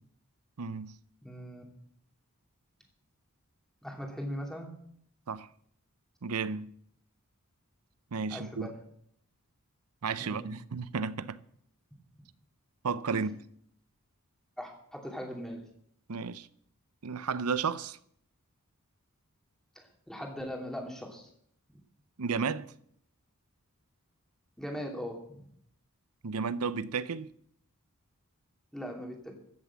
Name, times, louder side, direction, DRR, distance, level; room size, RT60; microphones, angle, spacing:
voice 1, 0.6-0.9 5.3-5.5 6.2-6.7 8.1-8.7 10.0-11.4 12.8-13.3 16.1-16.5 17.0-18.0 22.2-22.7 26.2-27.3, right 5 dB, 80° right, 0.7 m, -33 dB
voice 2, 1.2-1.6 3.8-4.7 8.3-8.7 10.2-10.5 14.6-15.6 19.7-21.3 24.6-25.4 28.7-29.4, equal, ahead, 2.7 m, -40 dB
15.0 x 7.3 x 7.5 m
head